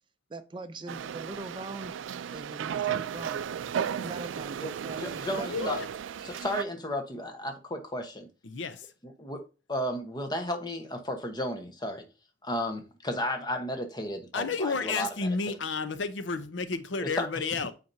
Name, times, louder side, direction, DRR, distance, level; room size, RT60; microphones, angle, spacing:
voice 1, 0.3-2.0 2.3-3.5 4.0-5.0 5.3-5.7, right 3 dB, 25° right, 0.4 m, -40 dB
sound 1, 0.9-6.6, right 8 dB, 85° right, 0.3 m, -34 dB
voice 2, 5.0-5.8 6.2-8.3 9.2-9.4 9.7-12.0 12.4-15.1 15.5-15.6 17.0-17.3, left 1 dB, 25° left, 1.0 m, -33 dB
voice 3, 5.5-5.9 8.4-8.9 14.3-17.7, left 4 dB, 75° left, 0.7 m, -31 dB
8.6 x 4.3 x 2.7 m
head